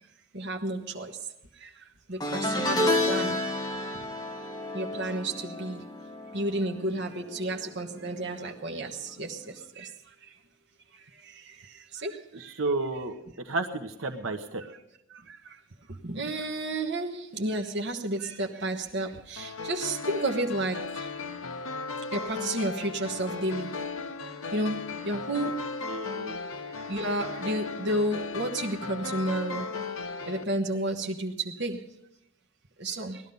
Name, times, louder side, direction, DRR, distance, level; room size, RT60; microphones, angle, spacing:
voice 1, 0.3-1.1 1.6-1.7 2.1-3.4 4.7-5.8 6.3-9.4 9.8-9.9 12.0-12.2 15.3-15.4 16.0-21.1 22.1-23.8 24.5-25.6 26.9-29.7 30.3-31.9 32.8-33.2, right 1 dB, 55° right, 1.2 m, -31 dB
sound 1, 2.2-7.6 7.9-8.2 9.5-9.6, left 1 dB, 20° left, 1.6 m, -30 dB
voice 2, 12.3-14.6 25.4-25.5 25.9-26.4, right 3 dB, 75° right, 1.2 m, -32 dB
sound 2, 19.4-30.4, left 4 dB, 75° left, 1.0 m, -36 dB
18.5 x 12.0 x 5.5 m
head